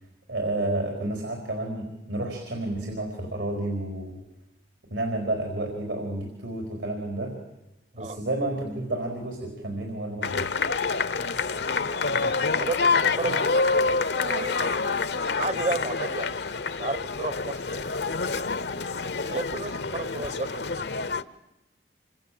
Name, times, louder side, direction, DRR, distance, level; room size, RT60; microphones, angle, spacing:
voice 1, 0.3-4.2 4.9-7.4 7.9-10.5 13.2-13.3, right 1 dB, 85° right, 3 dB, 4.7 m, -30 dB
sound 1, 10.2-21.2, left 4 dB, 65° left, 0.9 m, -27 dB
voice 2, 11.7-12.0 12.5-14.6 15.4-16.4 16.8-17.9 19.3-20.7, right 3 dB, 35° right, 16 dB, 0.9 m, -33 dB
27.5 x 26.0 x 7.8 m, 0.94 s
head